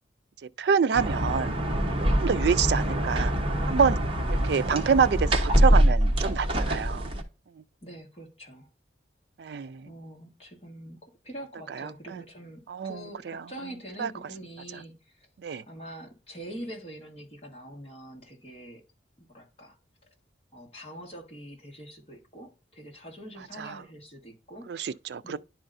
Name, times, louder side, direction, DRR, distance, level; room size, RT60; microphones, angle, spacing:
voice 1, 0.6-1.5 2.1-3.3 3.7-4.0 4.3-7.1 9.4-9.9 11.7-12.2 12.7-13.4 14.0-14.1 15.4-15.6 23.6-23.8 24.7-25.4, right 6 dB, 65° right, 0.4 m, -27 dB
sound 1, 0.9-7.2, equal, 30° right, 0.9 m, -24 dB
voice 2, 7.8-8.7 9.8-15.3 15.7-18.8 19.2-20.1 20.5-25.0 25.2-25.4, right 1 dB, 30° left, 1.6 m, -44 dB
10.5 x 4.4 x 2.6 m
head